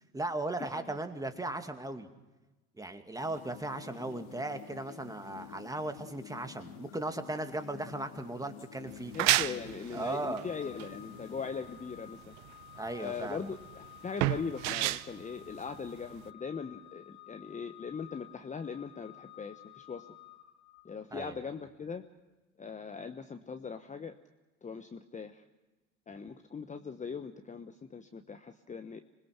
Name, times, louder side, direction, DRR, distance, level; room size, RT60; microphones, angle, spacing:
voice 1, 0.1-2.1 2.8-9.1 9.9-10.4 12.8-13.5 21.1-21.4, right 2 dB, 10° right, 7 dB, 2.3 m, -37 dB
sound 1, 3.2-11.5, left 15 dB, 60° left, 0.9 m, -50 dB
sound 2, 8.9-16.3, right 17 dB, 60° right, 0.9 m, -33 dB
voice 2, 9.1-12.3 13.0-20.1 20.8-22.0 22.6-24.1 24.6-25.4 26.1-29.0, left 5 dB, 20° left, 7 dB, 1.1 m, -40 dB
Organ, 10.4-21.2, left 15 dB, 45° left, 1.7 m, -54 dB
26.5 x 21.0 x 6.0 m, 1.1 s
hypercardioid pair, 75°, 40 cm